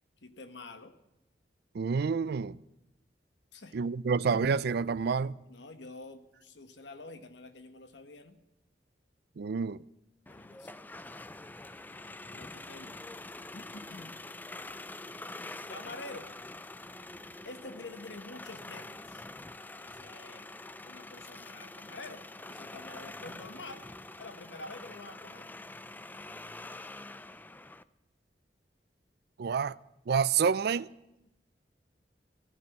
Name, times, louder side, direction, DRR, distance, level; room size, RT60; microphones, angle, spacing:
voice 1, 0.2-0.9 3.5-3.8 5.5-8.4 10.3-10.9 12.3-13.0 13.5-14.2 15.7-16.3 17.4-19.3 19.7-23.8 24.2-25.5, left 2 dB, 85° left, 1.4 m, -47 dB
voice 2, 1.7-2.6 3.7-5.4 9.4-9.8 29.4-29.7 30.1-30.9, right 6 dB, 65° right, 0.4 m, -28 dB
sound 1, 10.3-27.8, left 2 dB, 10° left, 0.4 m, -46 dB
15.0 x 7.6 x 8.3 m
head